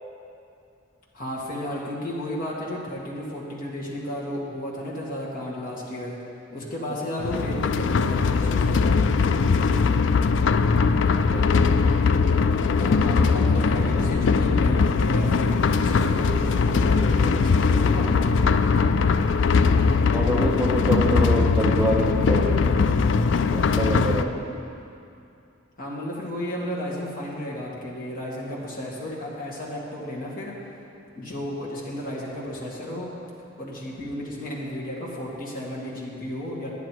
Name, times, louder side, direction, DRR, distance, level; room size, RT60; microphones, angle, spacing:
voice 1, 1.1-6.2 6.5-8.8 12.8-18.1 23.8-24.4 25.8-30.5 31.2-33.1 33.6-36.7, left 1 dB, 45° left, -5 dB, 2.1 m, -33 dB
sound 1, 7.2-24.2, left 4 dB, 65° left, 0.4 m, -20 dB
voice 2, 20.1-22.5 23.4-24.2, right 1 dB, 10° right, -4 dB, 0.8 m, -26 dB
10.5 x 10.0 x 4.6 m, 2.6 s
head